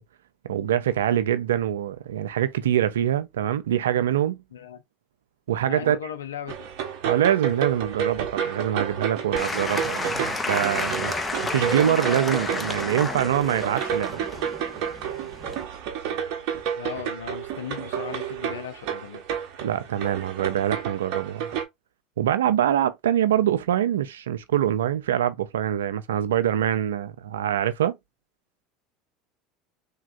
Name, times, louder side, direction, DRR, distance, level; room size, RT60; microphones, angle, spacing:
voice 1, 0.5-4.4 5.5-6.0 7.0-11.1 11.4-14.2 19.6-21.5 22.2-28.0, right 10 dB, 85° right, 0.3 m, -24 dB
voice 2, 4.5-4.8 5.6-6.7 16.8-19.2, left 8 dB, 85° left, 0.4 m, -37 dB
sound 1, 6.5-21.6, right 8 dB, 65° right, 0.7 m, -31 dB
Applause / Crowd, 9.3-15.6, left 3 dB, 20° left, 0.6 m, -31 dB
3.4 x 2.2 x 2.5 m
hypercardioid pair, 80°, 0 cm